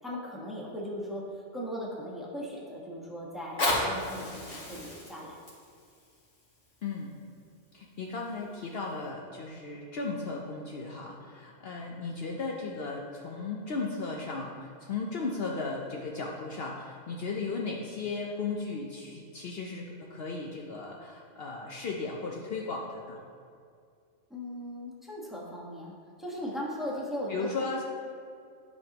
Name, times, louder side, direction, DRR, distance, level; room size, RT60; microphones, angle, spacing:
voice 1, 0.0-1.2 1.5-5.4 24.3-27.8, equal, ahead, -5 dB, 1.3 m, -38 dB
Fire, 3.3-8.3 8.9-9.0, left 1 dB, 80° left, 2.5 m, -35 dB
voice 2, 6.8-7.1 7.7-23.2 27.3-27.8, left 4 dB, 60° left, -1 dB, 0.9 m, -36 dB
12.0 x 5.3 x 2.9 m, 2.2 s
omnidirectional pair, 1.2 m